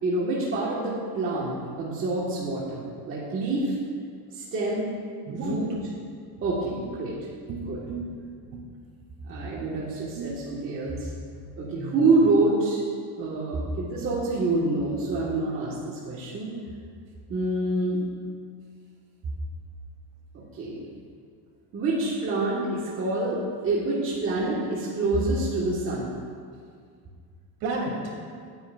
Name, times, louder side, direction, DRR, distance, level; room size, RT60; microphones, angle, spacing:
voice 1, 0.0-3.7 4.3-4.9 5.3-5.6 6.4-7.1 7.7-7.8 9.2-11.1 11.6-12.8 13.2-16.5 17.3-18.0 20.3-20.8 21.7-26.1, right 2 dB, 30° right, -6 dB, 1.6 m, -27 dB
voice 2, 5.2-5.8 6.7-7.0 7.5-8.7 9.3-9.6 10.1-10.5 11.8-12.1 27.6-28.1, right 2 dB, 55° right, -2 dB, 3.1 m, -34 dB
19.5 x 9.3 x 2.5 m, 2.1 s
cardioid pair, 155°, 44 cm